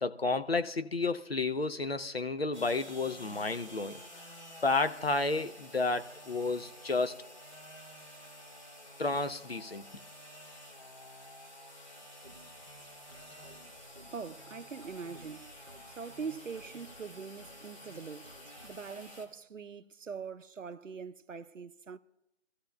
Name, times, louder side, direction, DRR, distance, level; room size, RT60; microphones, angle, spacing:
voice 1, 0.0-4.0 4.6-7.2 9.0-9.9, left 3 dB, 50° left, 0.6 m, -31 dB
sound 1, 2.5-19.3, left 1 dB, 35° left, 2.1 m, -51 dB
sound 2, 12.2-19.1, right 1 dB, 20° right, 1.0 m, -57 dB
voice 2, 14.1-15.5 15.9-18.3 18.6-22.0, right 5 dB, 80° right, 0.7 m, -43 dB
24.0 x 14.5 x 2.3 m
figure-of-eight pair, 165°, 38 cm